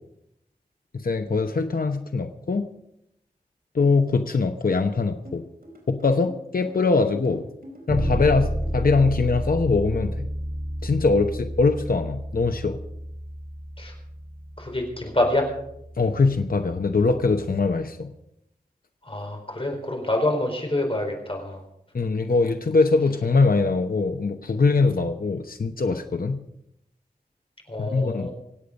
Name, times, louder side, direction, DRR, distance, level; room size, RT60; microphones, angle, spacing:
voice 1, 0.9-2.7 3.7-5.4 5.9-7.5 7.9-10.3 10.8-12.8 16.0-18.1 21.9-26.4 27.8-28.3, left 4 dB, 70° left, 6 dB, 0.9 m, -22 dB
sound 1, 5.2-9.2, equal, 75° right, 4.6 m, -44 dB
Bass guitar, 7.9-17.7, equal, 30° right, 4.9 m, -32 dB
voice 2, 14.6-15.5 19.0-21.6 27.7-28.3, left 1 dB, 35° left, 2 dB, 4.3 m, -26 dB
25.5 x 8.5 x 5.3 m, 0.79 s
wide cardioid pair, 75°, 16 cm